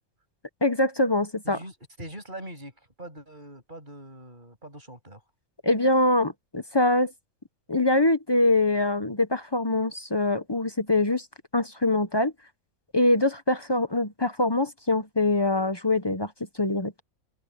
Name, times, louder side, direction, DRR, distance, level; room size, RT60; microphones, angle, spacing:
voice 1, 0.6-1.6 5.6-7.1 7.7-11.3 11.5-12.3 12.9-16.3 16.6-16.9, left 2 dB, 20° left, 0.8 m, -23 dB
voice 2, 1.4-5.2, right 1 dB, 35° right, 8.2 m, -43 dB
omnidirectional pair, 1.5 m